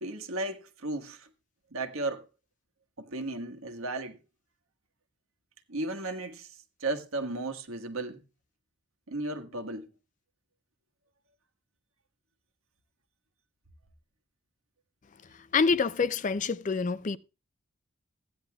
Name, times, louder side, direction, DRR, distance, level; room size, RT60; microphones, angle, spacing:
voice 1, 0.0-1.3 1.7-2.3 3.0-4.2 5.7-8.2 9.1-9.9, right 2 dB, 80° right, 1.4 m, -35 dB
voice 2, 15.5-17.2, left 5 dB, 35° left, 0.4 m, -26 dB
15.5 x 10.0 x 2.3 m
head